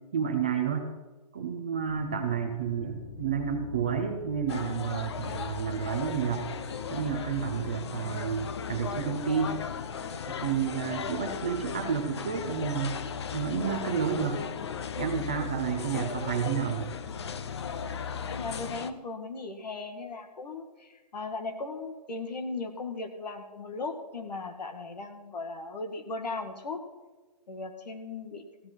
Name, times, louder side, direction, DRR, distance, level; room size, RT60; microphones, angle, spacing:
voice 1, 0.1-0.9 1.3-6.5 6.9-9.6 10.3-13.0 13.3-14.4 15.0-17.0, right 7 dB, 15° right, 4 dB, 0.4 m, -30 dB
sound 1, 1.9-18.8, left 6 dB, 60° left, 1.6 m, -42 dB
sound 2, 4.5-18.9, left 7 dB, 40° left, 0.6 m, -38 dB
voice 2, 18.3-26.8 27.5-28.4, left 3 dB, 75° left, 6 dB, 2.1 m, -37 dB
15.0 x 11.0 x 4.6 m, 1.3 s
hypercardioid pair, 175°, 21 cm